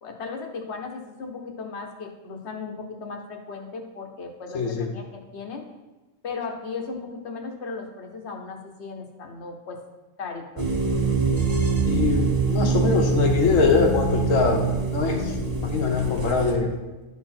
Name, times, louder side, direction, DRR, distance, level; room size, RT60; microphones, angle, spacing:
voice 1, 0.0-5.7 6.2-9.8 10.2-10.7, left 4 dB, 60° left, 3 dB, 1.2 m, -36 dB
voice 2, 4.5-4.9 11.8-16.7, left 4 dB, 75° left, 2 dB, 1.4 m, -23 dB
sound 1, 10.6-16.5, right 4 dB, 35° right, 0.9 m, -24 dB
11.0 x 4.3 x 4.3 m, 1.1 s
omnidirectional pair, 1.3 m